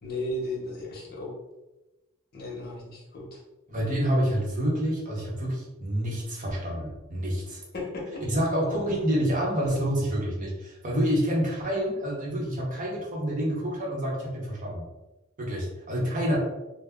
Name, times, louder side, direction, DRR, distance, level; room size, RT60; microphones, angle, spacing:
voice 1, 0.0-1.3 2.3-3.4 7.7-8.2, left 1 dB, 45° left, -3 dB, 0.7 m, -35 dB
voice 2, 3.7-7.6 8.2-14.8 15.4-16.4, equal, 40° right, -3 dB, 0.7 m, -28 dB
2.2 x 2.0 x 3.4 m, 1.0 s
head